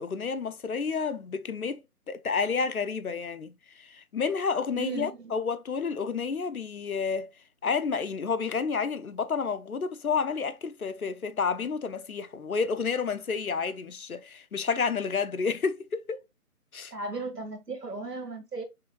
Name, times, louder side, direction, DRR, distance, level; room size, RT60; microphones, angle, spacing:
voice 1, 0.0-1.8 2.1-7.3 7.6-16.2 16.7-16.9, left 5 dB, 65° left, 0.6 m, -30 dB
voice 2, 4.7-5.3 16.9-18.6, right 3 dB, 90° right, 1.8 m, -36 dB
5.7 x 3.3 x 2.2 m
figure-of-eight pair, 180°, 46 cm